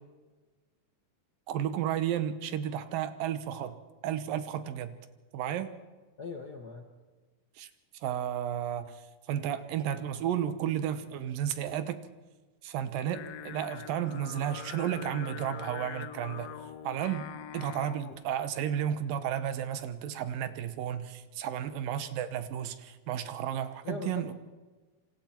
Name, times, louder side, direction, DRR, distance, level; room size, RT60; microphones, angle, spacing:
voice 1, 1.5-3.7 4.0-4.9 5.3-5.7 7.6-7.7 8.0-9.0 9.3-12.0 12.6-16.5 16.8-24.3, right 10 dB, 75° right, 11 dB, 2.7 m, -33 dB
voice 2, 6.2-6.9 23.8-24.3, left 4 dB, 70° left, 4 dB, 0.9 m, -40 dB
Singing, 13.1-18.3, left 10 dB, 85° left, 1.4 m, -43 dB
27.0 x 27.0 x 4.5 m, 1.3 s
omnidirectional pair, 4.0 m